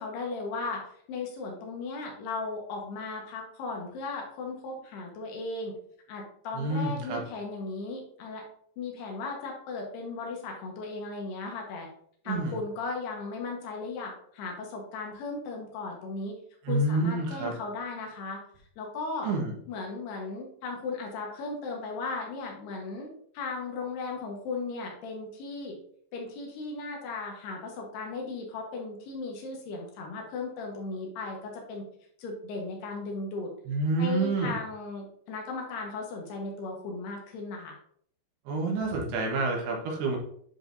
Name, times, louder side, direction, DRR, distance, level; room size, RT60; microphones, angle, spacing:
voice 1, 0.0-5.8 6.1-8.4 8.8-11.9 12.2-16.3 16.7-18.4 18.8-19.3 19.7-25.8 26.1-31.9 32.2-33.5 34.0-37.8, left 3 dB, 80° left, 1 dB, 3.4 m, -36 dB
voice 2, 6.5-7.2 12.3-12.6 16.6-17.5 19.2-19.5 33.7-34.6 38.5-40.2, right 2 dB, 80° right, 0 dB, 3.4 m, -28 dB
9.8 x 4.9 x 2.7 m, 0.64 s
omnidirectional pair, 4.7 m